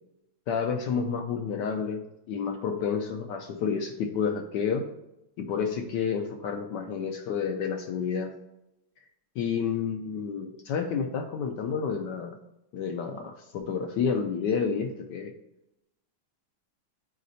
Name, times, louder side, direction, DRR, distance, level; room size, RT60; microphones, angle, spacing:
voice 1, 0.5-4.9 5.4-8.3 9.4-12.4 12.7-15.3, left 6 dB, 75° left, 5 dB, 1.0 m, -30 dB
9.3 x 4.1 x 2.7 m, 0.88 s
omnidirectional pair, 2.3 m